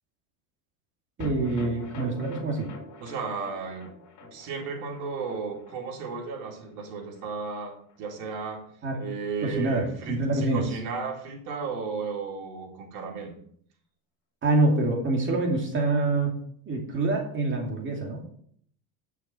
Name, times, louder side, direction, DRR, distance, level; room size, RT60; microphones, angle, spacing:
sound 1, 1.2-7.6 7.9-8.0 8.3-8.4, left 2 dB, 40° left, 3.2 m, -44 dB
voice 1, 1.2-2.7 8.8-9.0 9.4-10.6 14.4-16.4 16.7-18.2, right 2 dB, 25° right, 0 dB, 2.7 m, -26 dB
voice 2, 3.0-3.9 4.2-8.6 9.0-13.3, right 5 dB, 60° right, 0 dB, 3.8 m, -34 dB
10.0 x 6.5 x 6.0 m, 0.62 s
supercardioid pair, 135°, 43 cm